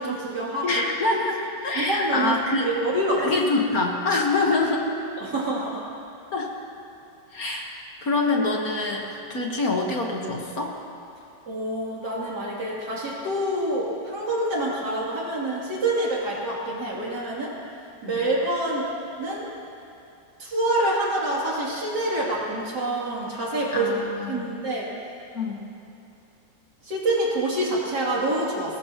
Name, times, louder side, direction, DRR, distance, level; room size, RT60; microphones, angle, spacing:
voice 1, 0.0-0.9 1.8-3.3 5.2-5.8 11.5-17.5 18.0-18.9 19.2-19.5 20.4-24.8 26.8-28.8, right 1 dB, 60° right, -5 dB, 3.4 m, -26 dB
voice 2, 0.6-2.7 3.2-4.9 6.3-6.5 7.3-10.7 18.0-18.2 23.7-24.5 25.3-25.6, left 3 dB, 50° left, 0 dB, 1.8 m, -25 dB
22.0 x 18.5 x 3.0 m, 2.6 s
omnidirectional pair, 2.0 m